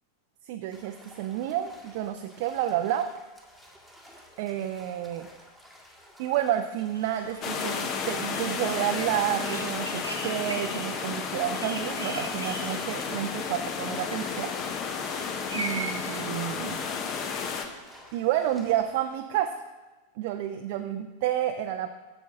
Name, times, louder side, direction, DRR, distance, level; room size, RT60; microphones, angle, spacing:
voice 1, 0.5-3.1 4.4-5.3 6.2-14.5 15.5-16.8 18.1-19.6 20.2-21.9, right 11 dB, 50° right, 6 dB, 0.5 m, -30 dB
sound 1, 0.7-19.2, equal, 5° left, 1.7 m, -52 dB
sound 2, 6.9-17.6, right 2 dB, 80° right, 1.3 m, -41 dB
sound 3, 7.4-17.6, left 6 dB, 35° left, 0.9 m, -32 dB
11.5 x 7.2 x 3.6 m, 1.2 s
figure-of-eight pair, 90°, 0 cm